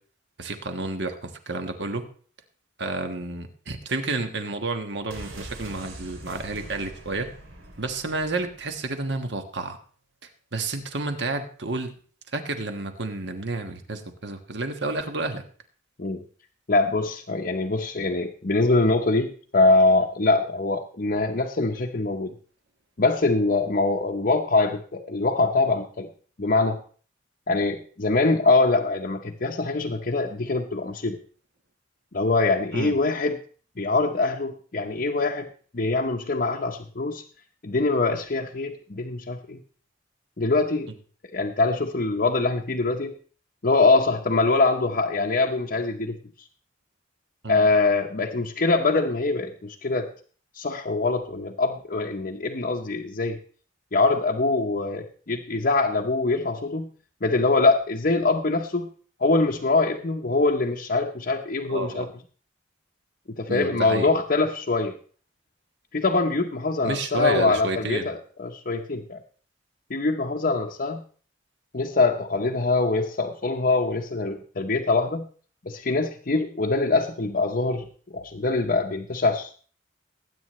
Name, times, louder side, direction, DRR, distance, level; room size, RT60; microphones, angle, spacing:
voice 1, 0.4-2.0 2.8-7.3 7.8-9.8 10.2-11.9 12.3-15.4 32.7-33.0 47.4-47.7 61.7-62.1 63.5-64.1 66.8-68.1, right 3 dB, 60° right, 6 dB, 1.4 m, -30 dB
sound 1, 5.1-8.9 9.1-9.2, right 1 dB, 85° right, 2.9 m, -43 dB
voice 2, 16.7-22.3 23.0-26.1 26.4-26.8 27.5-31.2 32.1-33.4 33.8-35.5 35.7-37.2 37.6-39.6 40.4-40.9 41.3-43.1 43.6-46.2 47.5-50.1 50.5-53.4 53.9-56.9 57.2-58.9 59.2-62.1 63.3-65.0 65.9-69.2 69.9-71.0 71.7-75.2 75.6-77.9 78.1-79.6, left 3 dB, 45° left, 0 dB, 0.8 m, -23 dB
20.0 x 9.2 x 3.1 m, 0.43 s
head